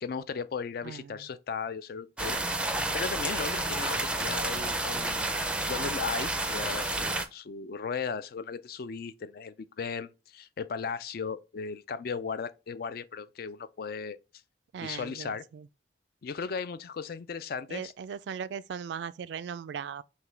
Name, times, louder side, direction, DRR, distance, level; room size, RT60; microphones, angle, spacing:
voice 1, 0.0-2.4 2.9-5.3 5.7-14.2 14.8-15.4 16.2-17.9, left 5 dB, 55° left, 0.4 m, -36 dB
voice 2, 0.8-1.3 14.7-15.7 17.7-20.0, right 7 dB, 75° right, 0.3 m, -38 dB
sound 1, 2.2-7.3, right 2 dB, 5° right, 0.4 m, -30 dB
5.7 x 2.2 x 3.2 m
head